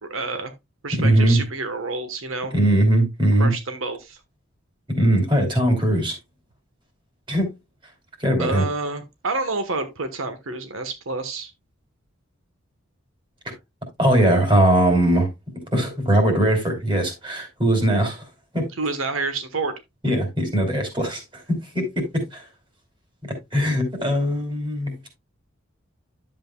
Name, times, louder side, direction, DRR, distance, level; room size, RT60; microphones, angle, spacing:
voice 1, 0.0-0.5 0.8-2.5 3.4-4.2 8.4-11.5 18.8-19.8, right 3 dB, 85° right, 1.2 m, -28 dB
voice 2, 1.0-1.4 2.5-3.5 5.0-6.2 7.3-7.5 8.2-8.6 14.0-15.3 15.7-18.2 18.5-18.6 20.0-21.2 21.5-22.4 23.2-24.9, right 1 dB, 25° right, 3.1 m, -20 dB
10.5 x 7.6 x 2.2 m
head